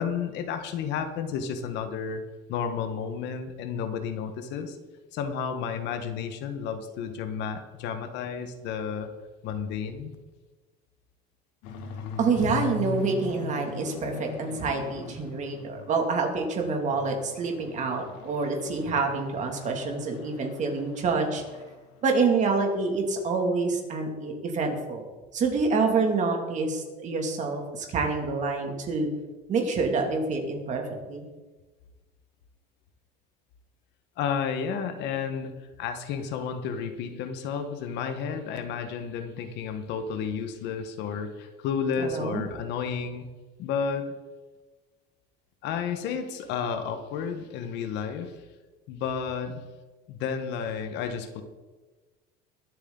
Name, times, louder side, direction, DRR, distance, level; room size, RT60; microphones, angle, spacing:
voice 1, 0.0-2.2 2.5-4.8 5.1-9.1 9.4-10.1 34.2-43.3 43.6-44.2 45.6-48.3 48.9-49.6 50.1-51.4, left 6 dB, 65° left, 8 dB, 1.5 m, -32 dB
sound 1, 11.6-16.2 16.6-21.8 22.1-22.4 22.7-22.8 23.2-23.3, left 6 dB, 90° left, 2.3 m, -40 dB
voice 2, 12.2-21.4 22.0-25.0 25.3-29.1 29.5-31.3 42.0-42.4, right 4 dB, 40° right, 2 dB, 2.6 m, -27 dB
22.0 x 8.3 x 4.0 m, 1.3 s
cardioid pair, 140°, 19 cm